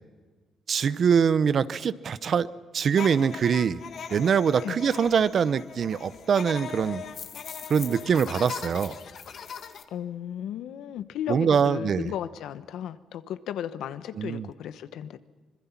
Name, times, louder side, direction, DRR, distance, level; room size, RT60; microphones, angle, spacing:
voice 1, 0.7-2.5 2.7-3.8 4.1-7.0 7.7-9.0 11.3-12.1 14.2-14.5, right 7 dB, 55° right, 16 dB, 0.8 m, -23 dB
sound 1, 2.9-9.8, left 7 dB, 60° left, 1.8 m, -39 dB
voice 2, 9.9-15.2, left 10 dB, 80° left, 12 dB, 1.0 m, -35 dB
26.0 x 21.5 x 5.9 m, 1.3 s
cardioid pair, 90°, 0 cm